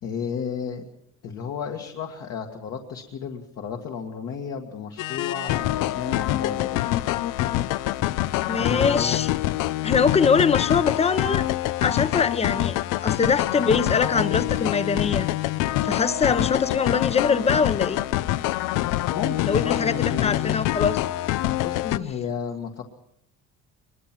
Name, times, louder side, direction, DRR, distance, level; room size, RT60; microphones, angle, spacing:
voice 1, 0.0-0.8 1.2-6.8 8.6-9.2 19.1-20.6 21.6-22.8, left 7 dB, 50° left, 2 dB, 1.8 m, -32 dB
sound 1, 5.0-22.0, left 15 dB, 90° left, 0.7 m, -25 dB
voice 2, 8.5-9.3 9.8-11.5 11.8-12.8 13.0-15.3 15.8-18.0 19.4-21.0, left 5 dB, 20° left, 14 dB, 0.9 m, -23 dB
22.5 x 21.5 x 6.0 m, 0.79 s
cardioid pair, 155°, 31 cm